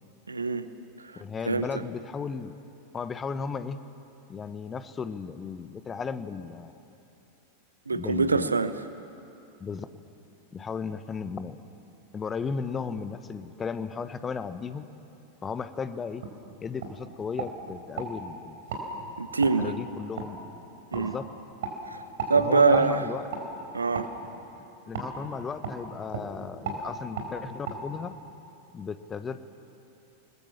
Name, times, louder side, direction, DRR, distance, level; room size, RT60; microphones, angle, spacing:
voice 1, 0.3-0.7 1.5-1.7 7.9-8.7 19.2-19.7 20.9-21.1 21.9-22.0 22.3-23.0 23.7-24.1, right 4 dB, 75° right, 12 dB, 1.0 m, -24 dB
voice 2, 1.1-2.6 2.9-3.8 4.3-6.8 7.9-8.6 9.6-9.9 10.5-11.6 12.1-14.9 15.4-16.2 16.6-18.6 19.6-20.4 20.9-21.3 22.3-23.3 24.9-28.1 28.7-29.4, left 5 dB, 20° left, 12 dB, 1.1 m, -35 dB
Jaw Clicks, 16.2-16.4 16.8-16.9 17.4-18.1 18.7-18.9 19.4-19.6 20.2-20.3 20.9-21.0 21.6-21.8 22.2-22.3 22.7-22.9 23.3-23.4 23.9-24.1 24.9-25.1 25.6-25.8 26.1-26.3 26.6-26.8 27.1-27.3 27.6-27.8, right 6 dB, 55° right, 4.4 m, -34 dB
29.5 x 20.5 x 7.3 m, 2.8 s
figure-of-eight pair, 90°, 0 cm